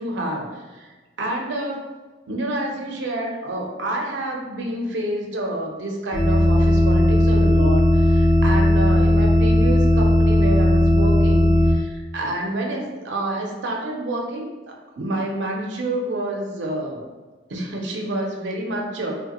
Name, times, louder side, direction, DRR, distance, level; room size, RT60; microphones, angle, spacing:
voice 1, 0.0-1.8 2.3-17.0 17.5-19.1, right 1 dB, 75° right, 0 dB, 0.5 m, -28 dB
sound 1, 6.1-11.7, left 1 dB, 20° right, 0.5 m, -16 dB
2.8 x 2.1 x 2.9 m, 1.3 s
head